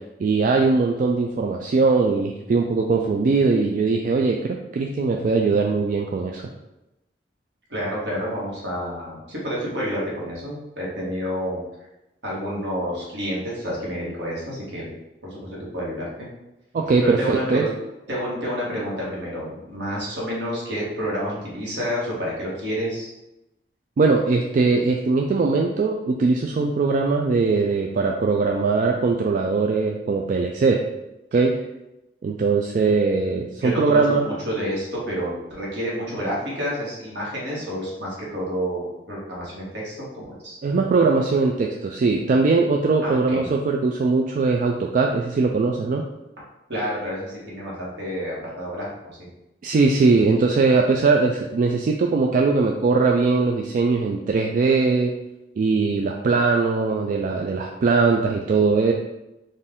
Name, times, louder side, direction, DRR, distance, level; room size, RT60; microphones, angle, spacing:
voice 1, 0.2-6.5 16.7-17.6 24.0-30.8 31.3-31.5 32.2-34.2 40.6-46.0 49.6-55.1 55.6-58.9, right 4 dB, 50° right, 1 dB, 0.3 m, -20 dB
voice 2, 7.7-11.6 12.2-14.9 15.3-16.3 17.0-17.7 18.1-23.1 32.8-32.9 33.5-40.6 43.0-43.5 46.7-49.3, equal, 75° right, -5 dB, 1.5 m, -29 dB
4.2 x 2.5 x 3.6 m, 0.95 s
head